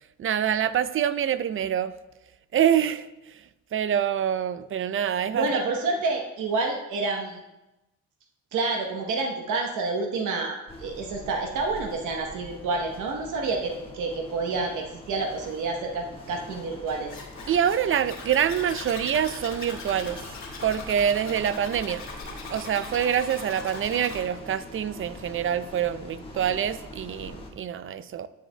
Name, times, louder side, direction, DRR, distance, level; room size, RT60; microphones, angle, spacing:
voice 1, 0.2-1.9 2.5-3.4 3.7-5.6 17.5-20.2 20.6-22.0 22.5-28.3, right 9 dB, 45° right, 15 dB, 0.4 m, -26 dB
voice 2, 5.3-7.4 8.5-17.1, right 3 dB, 85° right, 2 dB, 1.1 m, -28 dB
sound 1, 10.7-27.5, left 2 dB, 20° left, 1.4 m, -44 dB
Zipper (clothing), 17.1-24.2, left 4 dB, 70° left, 2.4 m, -40 dB
12.5 x 6.4 x 2.2 m, 0.97 s
cardioid pair, 90°, 30 cm